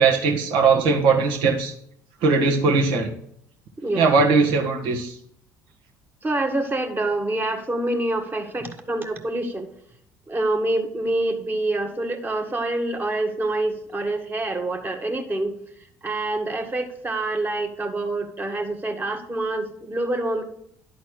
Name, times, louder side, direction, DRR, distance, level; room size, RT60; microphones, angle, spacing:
voice 1, 0.0-1.7 2.2-3.1 3.9-5.1, right 4 dB, 70° right, 1 dB, 1.6 m, -19 dB
voice 2, 6.2-9.7 10.3-15.5 16.0-20.4, right 2 dB, 25° right, 4 dB, 1.6 m, -26 dB
11.0 x 4.2 x 6.3 m, 0.69 s
hypercardioid pair, 65°, 9 cm